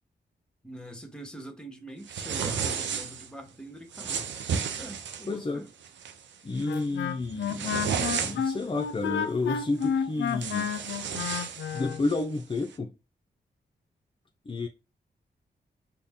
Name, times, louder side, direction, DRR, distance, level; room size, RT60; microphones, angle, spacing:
voice 1, 0.6-4.3 4.8-5.7, right 1 dB, 5° left, 1.1 m, -44 dB
sound 1, 2.1-3.3 3.9-5.3 5.8-6.1 6.6-6.8 7.2-8.6 9.8-9.9 10.3-12.2, right 7 dB, 85° right, 0.5 m, -32 dB
voice 2, 5.3-5.6 6.4-10.7 11.7-12.9 14.5-14.7, left 3 dB, 30° left, 0.5 m, -31 dB
Wind instrument woodwind instrument, 6.6-12.0, left 7 dB, 85° left, 0.4 m, -31 dB
4.0 x 2.1 x 3.5 m
cardioid pair, 60°, 19 cm